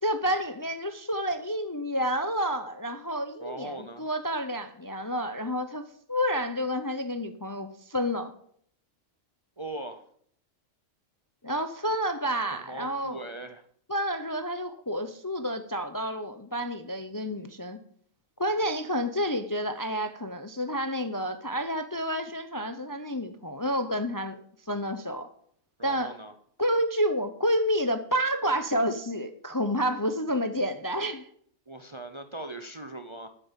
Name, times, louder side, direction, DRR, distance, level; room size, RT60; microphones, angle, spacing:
voice 1, 0.0-5.8 6.1-8.3 11.4-13.2 13.9-17.8 18.4-24.4 24.7-25.3 25.8-26.1 26.6-31.3, equal, 20° left, 8 dB, 0.5 m, -29 dB
voice 2, 3.4-4.1 9.6-10.1 12.7-13.7 25.8-26.3 31.7-33.3, right 1 dB, 30° right, 8 dB, 0.6 m, -40 dB
9.3 x 9.1 x 7.4 m, 0.64 s
omnidirectional pair, 1.3 m